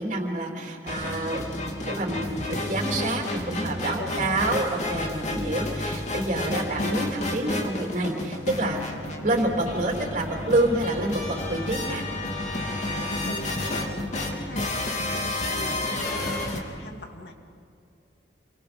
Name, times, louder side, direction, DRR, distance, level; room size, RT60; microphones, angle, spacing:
voice 1, 0.0-1.4 1.7-12.0, right 1 dB, 45° right, 1 dB, 3.5 m, -28 dB
sound 1, 0.9-16.6, left 1 dB, 40° left, 2.8 m, -31 dB
voice 2, 13.2-14.7 15.1-17.3, left 2 dB, 65° left, 3 dB, 2.6 m, -40 dB
28.0 x 25.0 x 5.4 m, 2.4 s
head